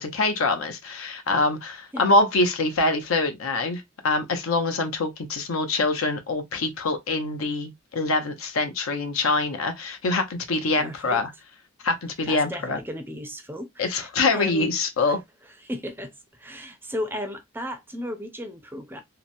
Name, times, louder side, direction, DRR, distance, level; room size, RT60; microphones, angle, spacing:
voice 1, 0.0-11.3 11.8-12.8 13.8-15.2, left 3 dB, 85° left, 0.6 m, -24 dB
voice 2, 10.7-11.2 12.3-14.7 15.1-15.2 15.6-16.1 16.4-19.0, left 1 dB, 10° right, 0.4 m, -35 dB
2.8 x 2.0 x 2.5 m
head